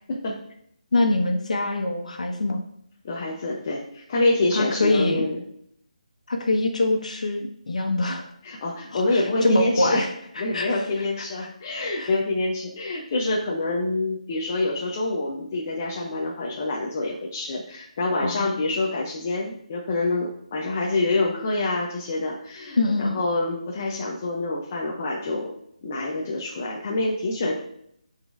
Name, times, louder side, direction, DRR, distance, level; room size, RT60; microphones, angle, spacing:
voice 1, 0.1-0.4 3.0-5.4 8.4-10.1 10.4-25.5 25.8-27.5, left 2 dB, 20° left, -2 dB, 0.5 m, -26 dB
voice 2, 0.9-2.6 4.5-5.3 6.3-8.3 8.9-10.1 10.5-10.8 12.0-12.1 18.2-18.5 22.8-23.2, left 2 dB, 65° left, 3 dB, 1.1 m, -24 dB
9.8 x 3.9 x 2.5 m, 0.70 s
hypercardioid pair, 175°, 4 cm